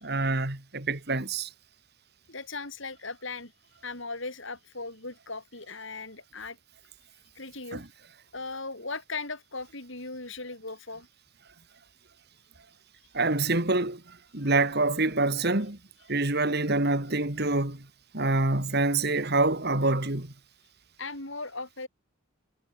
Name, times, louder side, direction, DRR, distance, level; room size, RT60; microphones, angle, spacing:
voice 1, 0.0-1.5 7.7-7.8 13.1-14.0 14.3-15.8 16.1-17.8 18.1-20.3, right 2 dB, 50° right, 2.7 m, -26 dB
voice 2, 2.3-3.5 3.8-6.6 7.3-7.8 8.3-11.1 21.0-21.9, left 3 dB, 60° left, 6.7 m, -38 dB
head